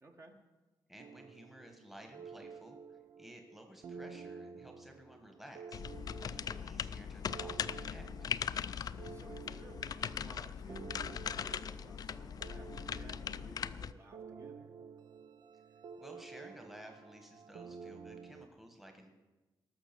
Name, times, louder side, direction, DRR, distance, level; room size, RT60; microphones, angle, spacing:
voice 1, 0.0-0.4 8.9-14.7, right 2 dB, 35° right, 3 dB, 1.5 m, -58 dB
voice 2, 0.9-5.8 6.2-8.1 16.0-19.1, equal, 5° right, 3 dB, 1.4 m, -54 dB
sound 1, 1.0-18.5, right 5 dB, 60° right, 0.6 m, -51 dB
sound 2, 5.7-13.9, left 7 dB, 50° left, 0.4 m, -40 dB
19.0 x 6.4 x 6.8 m, 1.1 s
wide cardioid pair, 160°, 8 cm